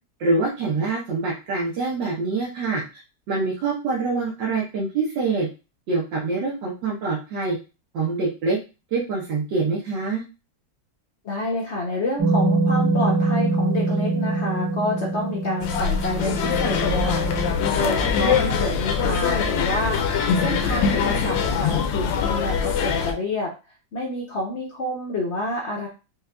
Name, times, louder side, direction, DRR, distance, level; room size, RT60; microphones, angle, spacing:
voice 1, 0.2-2.8 3.3-5.5 5.9-7.6 7.9-8.6 8.9-10.2, right 3 dB, 75° right, -5 dB, 1.5 m, -25 dB
voice 2, 11.2-23.5 23.9-25.9, left 1 dB, 65° left, -1 dB, 0.6 m, -28 dB
sound 1, 12.2-17.5, right 2 dB, 25° right, 0.5 m, -24 dB
sound 2, 15.6-23.1, left 6 dB, 85° left, 1.3 m, -23 dB
5.1 x 2.4 x 2.2 m, 0.30 s
omnidirectional pair, 2.0 m